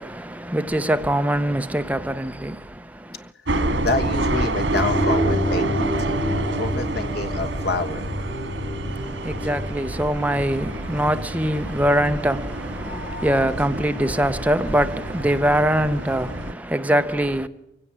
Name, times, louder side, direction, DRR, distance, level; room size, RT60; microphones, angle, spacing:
voice 1, 0.0-3.3 8.9-17.5, right 1 dB, 10° right, 0.7 m, -23 dB
sound 1, 3.5-16.5, right 2 dB, 85° right, 1.8 m, -28 dB
voice 2, 3.8-6.2 6.6-8.4 12.8-13.3, left 3 dB, 60° left, 1.4 m, -28 dB
sound 2, 4.7-9.7, equal, 15° left, 2.8 m, -27 dB
24.0 x 16.5 x 7.4 m
head